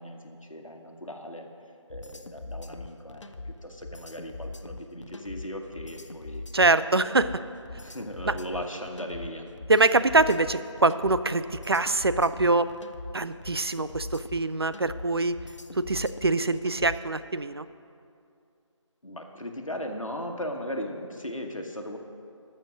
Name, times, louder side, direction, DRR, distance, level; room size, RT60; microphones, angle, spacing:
voice 1, 0.0-1.5 1.9-6.4 7.0-7.2 7.8-9.5 19.0-22.0, equal, 90° left, 2 dB, 1.4 m, -37 dB
sound 1, 1.9-17.1, left 2 dB, 70° left, 0.7 m, -41 dB
voice 2, 6.5-7.3 8.3-8.4 9.7-12.7 13.1-15.4 15.8-17.7, right 2 dB, 50° right, 13 dB, 0.4 m, -24 dB
13.5 x 6.5 x 6.2 m, 2.4 s
figure-of-eight pair, 165°, 16 cm